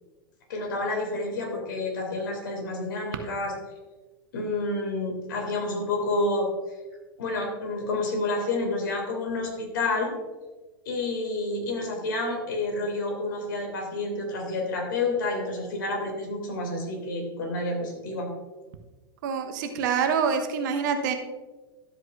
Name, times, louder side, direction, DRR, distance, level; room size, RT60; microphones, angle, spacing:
voice 1, 0.5-3.5 4.3-6.5 7.2-10.1 10.8-18.3, left 2 dB, 65° left, 1 dB, 2.8 m, -29 dB
voice 2, 19.2-21.1, right 6 dB, 55° right, 7 dB, 1.1 m, -26 dB
12.5 x 8.2 x 2.6 m, 1.2 s
figure-of-eight pair, 95°, 12 cm